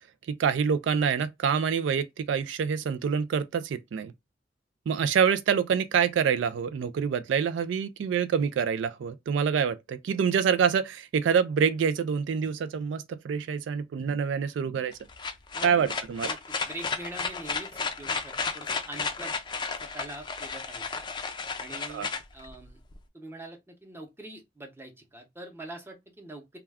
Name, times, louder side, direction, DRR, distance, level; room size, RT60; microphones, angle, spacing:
voice 1, 0.4-4.1 4.9-14.9 15.6-16.3 21.9-22.1, right 7 dB, 85° right, 0.3 m, -26 dB
sound 1, 14.9-23.0, left 4 dB, 25° left, 0.4 m, -33 dB
voice 2, 16.7-19.4 19.8-21.0 21.6-22.8 23.1-26.6, right 1 dB, 15° right, 0.7 m, -44 dB
2.3 x 2.2 x 3.3 m
head